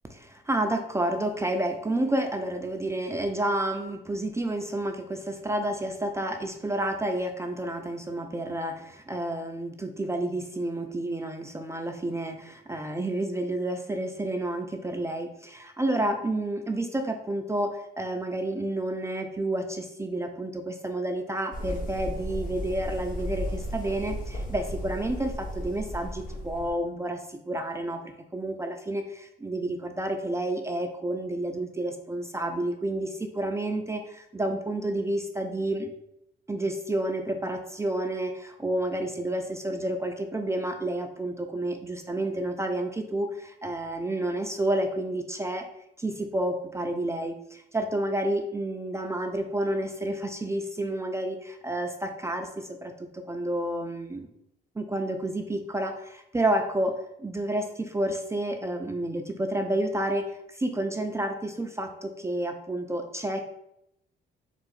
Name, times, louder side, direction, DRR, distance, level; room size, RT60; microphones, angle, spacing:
voice 1, 0.1-35.9 36.5-45.7 46.0-54.3 54.8-63.4, right 1 dB, 15° right, 4 dB, 0.4 m, -30 dB
sound 1, 21.5-26.7, equal, 40° left, 1.0 m, -34 dB
3.8 x 2.4 x 3.9 m, 0.80 s
cardioid pair, 90°, 20 cm